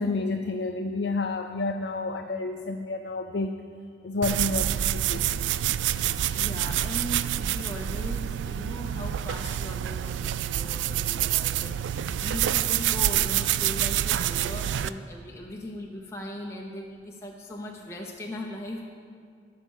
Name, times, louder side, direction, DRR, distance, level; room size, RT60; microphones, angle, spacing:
voice 1, 0.0-3.6 4.0-5.2, left 3 dB, 70° left, 5 dB, 0.5 m, -30 dB
sound 1, 4.2-14.9, right 11 dB, 85° right, 0.3 m, -27 dB
voice 2, 6.3-18.8, left 1 dB, 15° left, -1 dB, 0.7 m, -39 dB
13.0 x 5.6 x 6.4 m, 2.2 s
head